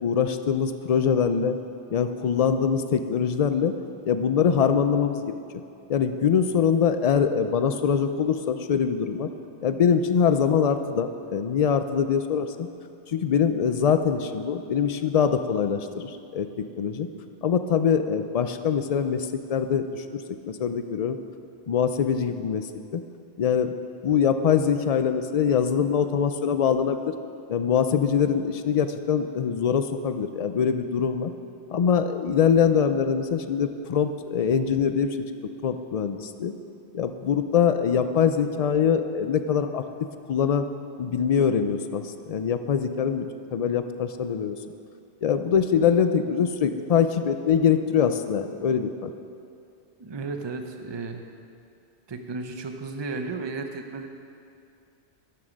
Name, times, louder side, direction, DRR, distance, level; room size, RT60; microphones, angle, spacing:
voice 1, 0.0-1.6 1.9-3.8 4.1-5.4 5.9-9.3 9.6-12.7 13.1-16.5 16.8-17.1 17.4-21.2 21.7-23.0 23.4-23.7 24.0-27.1 27.5-31.3 31.7-35.2 35.6-36.5 36.9-39.8 40.3-40.6 41.0-43.3 43.5-44.6 45.2-49.1, left 7 dB, 50° left, 9 dB, 0.5 m, -23 dB
voice 2, 50.0-51.2 52.1-54.1, right 3 dB, 30° right, 6 dB, 0.6 m, -34 dB
12.5 x 7.5 x 5.2 m, 2.5 s
omnidirectional pair, 1.1 m